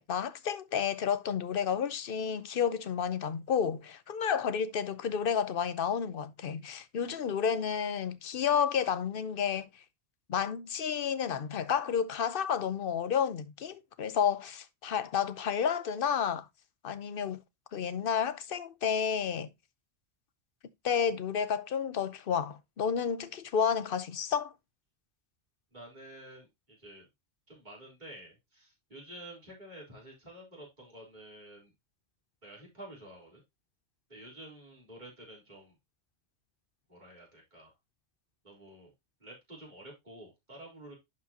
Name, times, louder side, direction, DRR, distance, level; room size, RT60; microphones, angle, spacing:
voice 1, 0.0-9.7 10.3-16.5 16.8-17.4 17.7-19.5 20.8-24.5, left 7 dB, 55° left, 0.9 m, -31 dB
voice 2, 25.7-27.1 27.5-31.7 32.4-33.4 34.1-35.7 36.9-37.7 38.4-38.9 39.2-40.9, right 1 dB, 40° right, 4.1 m, -50 dB
11.0 x 4.9 x 2.8 m
omnidirectional pair, 1.2 m